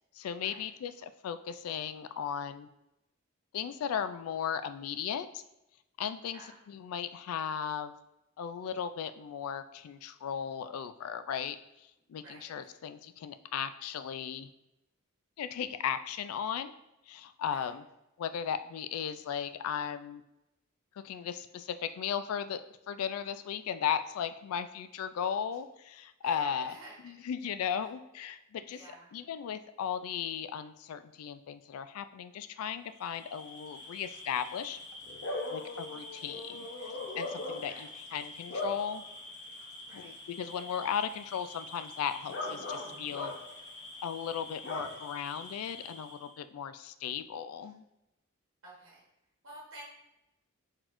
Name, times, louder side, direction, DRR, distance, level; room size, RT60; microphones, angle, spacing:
voice 1, 0.1-2.7 3.5-5.4 6.0-6.4 6.7-7.9 8.4-14.5 15.4-16.7 17.1-17.8 18.2-20.2 21.0-22.6 22.9-26.8 27.0-28.8 29.1-34.8 35.5-39.0 39.9-43.3 44.0-47.9, left 8 dB, 90° left, 13 dB, 0.3 m, -36 dB
voice 2, 6.2-6.6 12.2-12.7 17.4-17.7 26.2-27.1 27.8-27.9 28.7-29.1 37.7-37.9 39.9-40.1 48.6-49.0 49.4-49.8, right 2 dB, 75° right, -5 dB, 1.1 m, -51 dB
Bark / Cricket, 33.0-46.3, left 2 dB, 55° left, 0.7 m, -42 dB
4.4 x 4.0 x 2.5 m, 0.91 s
head